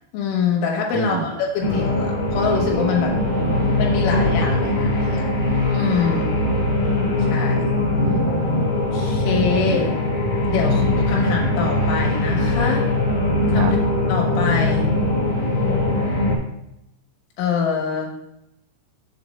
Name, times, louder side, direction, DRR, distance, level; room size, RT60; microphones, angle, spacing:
voice 1, 0.1-3.1 3.8-5.3 5.7-6.3 7.2-7.7 8.9-9.9 10.5-12.9 13.5-13.8 14.1-14.9 17.4-18.1, left 6 dB, 75° left, 0 dB, 3.7 m, -24 dB
voice 2, 0.9-1.3 3.4-4.1 8.0-8.7 9.7-9.9 13.5-13.7, right 7 dB, 85° right, 8 dB, 3.1 m, -28 dB
sound 1, 1.6-16.4, left 2 dB, 55° left, 1.9 m, -21 dB
7.5 x 6.9 x 3.2 m, 0.83 s
omnidirectional pair, 5.6 m